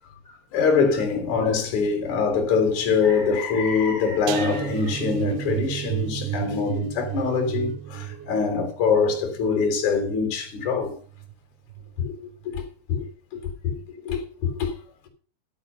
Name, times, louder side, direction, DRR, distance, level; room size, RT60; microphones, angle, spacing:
voice 1, 0.3-11.0 12.0-13.8 14.0-14.7, left 5 dB, 45° left, 4.5 m, -24 dB
sound 1, 4.3-11.3 11.7-12.0 12.3-12.5, right 12 dB, 75° right, 2.5 m, -32 dB
14.0 x 8.1 x 5.6 m
omnidirectional pair, 5.2 m